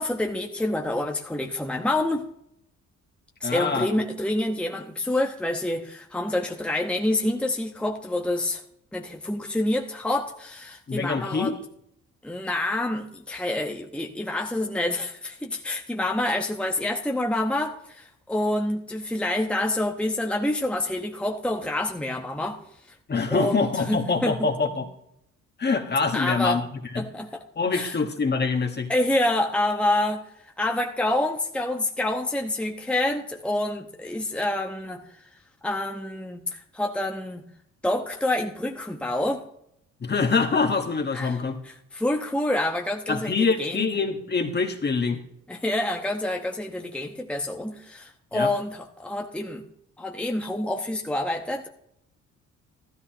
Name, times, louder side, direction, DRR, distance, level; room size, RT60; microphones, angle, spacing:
voice 1, 0.0-2.3 3.4-8.6 8.9-11.6 12.2-22.6 23.3-24.4 26.1-26.6 27.0-27.4 27.7-27.9 28.9-30.3 30.6-35.0 35.6-37.4 37.8-39.4 41.1-41.4 41.6-43.9 45.5-49.6 50.0-51.7, left 1 dB, 5° left, 2 dB, 1.0 m, -27 dB
voice 2, 3.4-3.9 10.9-11.6 23.1-24.9 25.6-27.0 27.6-28.9 40.0-41.6 43.1-45.2 48.3-48.5, left 4 dB, 35° left, 4 dB, 1.5 m, -25 dB
13.5 x 12.5 x 3.0 m, 0.72 s
cardioid pair, 90°, 30 cm